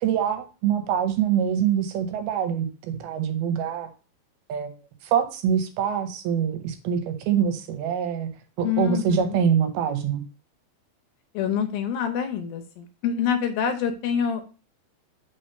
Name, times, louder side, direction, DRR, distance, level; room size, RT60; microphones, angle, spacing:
voice 1, 0.0-3.9 4.5-4.7 5.0-8.3 8.6-10.2, right 8 dB, 80° right, 7 dB, 2.6 m, -24 dB
voice 2, 8.6-9.4 11.3-14.5, left 8 dB, 75° left, 6 dB, 2.5 m, -26 dB
5.8 x 3.5 x 5.4 m, 0.33 s
omnidirectional pair, 4.5 m